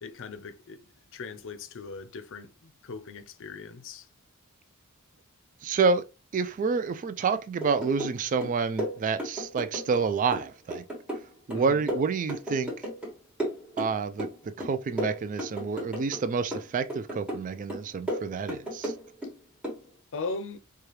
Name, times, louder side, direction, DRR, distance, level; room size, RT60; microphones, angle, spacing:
voice 1, 0.0-0.9 1.1-4.1 11.5-11.9 20.1-20.6, left 4 dB, 60° left, 0.5 m, -39 dB
voice 2, 5.6-6.0 6.3-10.8 11.5-12.7 13.8-18.9, right 5 dB, 35° right, 0.3 m, -28 dB
sound 1, 7.6-8.2 8.4-10.0 10.3-13.1 13.4-14.3 14.6-16.2 16.5-17.4 17.7-19.3 19.6-19.8, equal, 5° right, 1.3 m, -34 dB
4.8 x 2.3 x 3.0 m
head